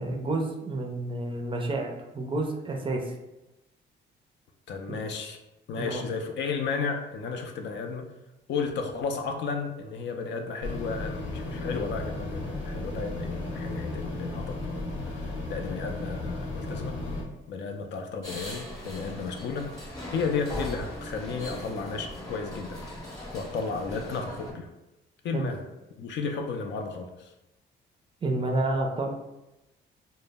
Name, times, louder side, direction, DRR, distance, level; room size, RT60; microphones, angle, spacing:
voice 1, 0.0-3.1 4.9-5.0 5.8-6.0 25.3-25.5 28.2-29.1, right 2 dB, 25° right, 1 dB, 0.4 m, -30 dB
voice 2, 4.7-5.4 5.7-8.1 8.5-17.0 17.5-19.7 20.1-22.9 23.3-24.7 25.2-25.7 26.0-27.3, left 5 dB, 65° left, 4 dB, 0.4 m, -33 dB
sound 1, 10.6-17.2, left 2 dB, 80° left, 0.8 m, -34 dB
sound 2, 18.2-24.5, left 1 dB, 20° left, 0.8 m, -39 dB
2.0 x 2.0 x 3.3 m, 0.96 s
cardioid pair, 90°, 20 cm